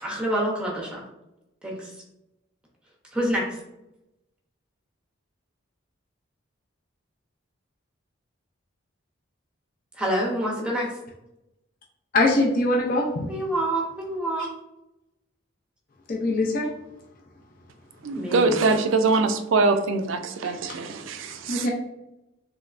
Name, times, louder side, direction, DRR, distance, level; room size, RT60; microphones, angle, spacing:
voice 1, 0.0-1.0 1.6-1.9 3.1-3.4 10.0-10.9 13.3-14.5 18.2-18.6, right 1 dB, 5° right, -2 dB, 0.6 m, -27 dB
voice 2, 12.1-13.3 16.1-16.7 20.4-20.5 21.5-21.7, left 2 dB, 40° left, -1 dB, 0.4 m, -22 dB
voice 3, 18.0-21.7, right 3 dB, 65° right, 8 dB, 0.3 m, -23 dB
3.3 x 3.0 x 2.4 m, 0.89 s
head